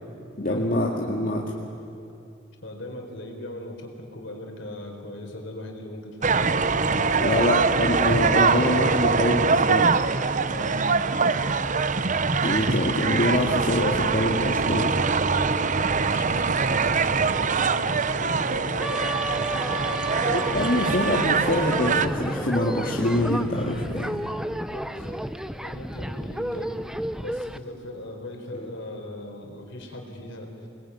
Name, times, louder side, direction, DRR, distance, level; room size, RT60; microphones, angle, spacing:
voice 1, 0.4-1.5 7.2-9.9 12.4-15.0 20.2-24.2, left 1 dB, 45° left, -2 dB, 2.2 m, -25 dB
voice 2, 2.6-7.7 10.4-10.8 16.1-20.5 24.5-25.2 25.6-26.9 27.1-30.7, left 1 dB, 65° left, 2 dB, 4.5 m, -39 dB
sound 1, 6.2-22.1, right 4 dB, 40° right, 0.8 m, -23 dB
sound 2, 18.8-27.6, equal, 5° right, 0.6 m, -31 dB
27.5 x 20.5 x 9.8 m, 2.7 s
head